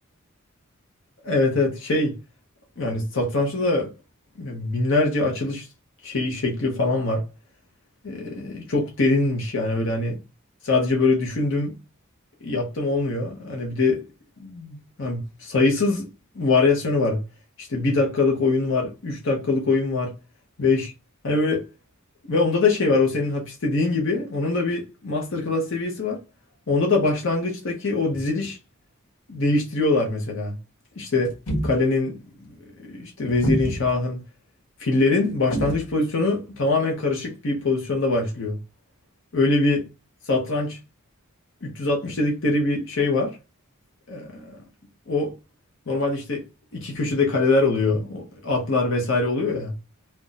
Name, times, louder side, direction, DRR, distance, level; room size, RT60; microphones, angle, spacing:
voice 1, 1.2-2.2 2.8-3.9 4.4-5.7 6.0-7.3 8.0-10.2 10.6-11.7 12.4-14.1 14.4-16.1 16.3-17.2 17.6-20.1 20.6-20.9 21.2-21.7 22.3-26.2 26.7-28.6 29.3-30.6 31.0-31.3 31.6-32.5 32.8-34.2 34.8-38.6 39.3-39.8 40.3-40.8 41.6-43.4 44.1-44.6 45.1-45.3 45.9-46.4 46.7-49.7, left 3 dB, 60° left, 0.9 m, -23 dB
sound 1, 31.3-31.8 33.3-33.9 35.5-35.9, right 1 dB, 85° left, 1.2 m, -26 dB
2.6 x 2.3 x 3.8 m
head